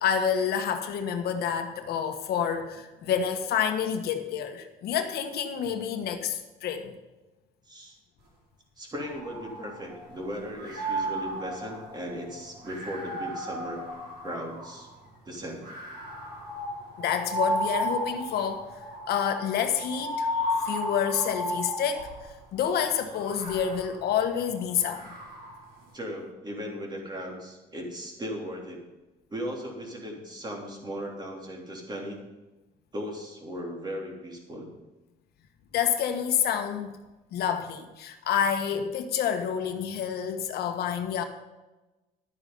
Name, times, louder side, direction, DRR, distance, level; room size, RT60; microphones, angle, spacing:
voice 1, 0.0-7.0 17.0-18.8 19.1-25.1 35.7-37.0 37.3-41.2, left 8 dB, 70° left, 6 dB, 1.3 m, -28 dB
voice 2, 8.8-13.8 14.2-14.9 15.3-15.6 25.9-28.8 29.3-32.2 32.9-34.7, equal, 25° right, 0 dB, 3.3 m, -37 dB
sound 1, 9.0-10.2 10.5-14.9 15.6-22.3 23.1-25.7, equal, 65° right, 4.8 m, -34 dB
11.5 x 9.3 x 5.5 m, 1.1 s
cardioid pair, 110°, 17 cm